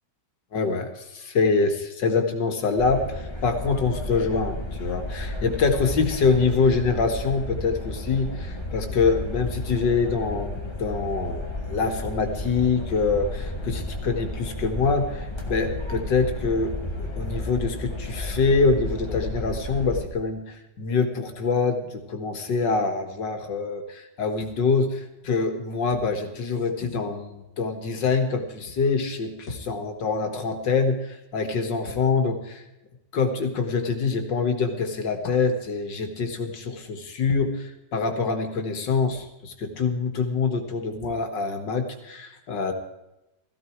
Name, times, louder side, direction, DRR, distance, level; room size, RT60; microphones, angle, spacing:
voice 1, 0.5-32.6 33.1-42.7, left 4 dB, 80° left, 6 dB, 2.4 m, -25 dB
sound 1, 2.8-20.1, left 1 dB, 15° left, 2.0 m, -33 dB
16.5 x 15.5 x 4.7 m, 0.93 s
omnidirectional pair, 1.9 m